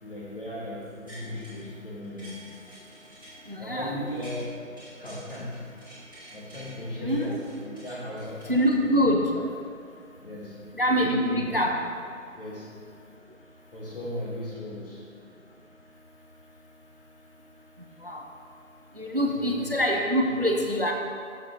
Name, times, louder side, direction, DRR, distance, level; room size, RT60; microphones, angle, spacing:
voice 1, 0.0-2.4 3.6-5.6 6.3-9.4 10.2-11.6 12.4-12.7 13.7-15.1 19.2-19.7 20.2-20.6, left 1 dB, 40° left, -5 dB, 1.6 m, -37 dB
sound 1, 0.8-1.7 2.0-4.4 4.8-6.7 7.1-9.1 9.5-9.6, equal, 15° right, 1.5 m, -49 dB
voice 2, 3.5-3.9 6.9-7.4 8.5-9.2 10.8-11.8 18.0-18.2 19.0-20.9, equal, 45° right, 2 dB, 0.5 m, -25 dB
6.8 x 6.3 x 3.8 m, 2.2 s
figure-of-eight pair, 170°, 42 cm